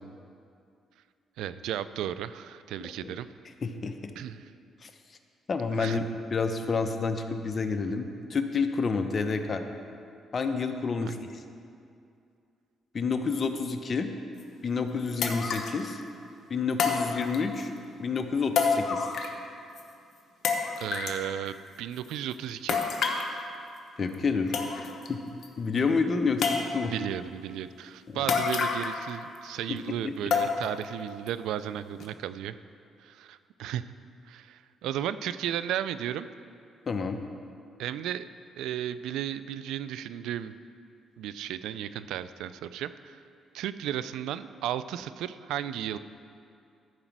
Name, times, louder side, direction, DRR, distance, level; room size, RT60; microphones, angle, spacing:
voice 1, 1.4-3.3 4.2-4.5 5.8-6.0 11.0-11.1 20.8-22.8 26.9-32.6 33.0-33.9 34.3-36.3 37.8-38.3 38.6-40.5 41.2-43.2 43.5-46.0, right 11 dB, 90° right, 14 dB, 0.3 m, -34 dB
voice 2, 3.6-4.1 4.8-4.9 5.5-6.0 6.3-9.6 10.3-11.2 12.9-14.1 14.6-16.0 16.5-17.7 18.0-19.1 24.0-25.2 25.6-26.9 28.1-28.2 29.7-30.1 36.9-37.2, left 4 dB, 40° left, 6 dB, 0.8 m, -29 dB
sound 1, 14.4-14.5 15.2-15.8 16.8-17.6 18.6-19.5 19.8-19.9 20.4-21.2 22.7-23.3 24.1-24.2 24.5-25.1 25.4-25.5 26.4-27.0 28.3-29.1 29.3-29.4 30.3-30.8 31.3-31.4 32.0-32.1, left 5 dB, 60° left, 1.0 m, -28 dB
12.5 x 5.0 x 6.0 m, 2.4 s
cardioid pair, 90°, 0 cm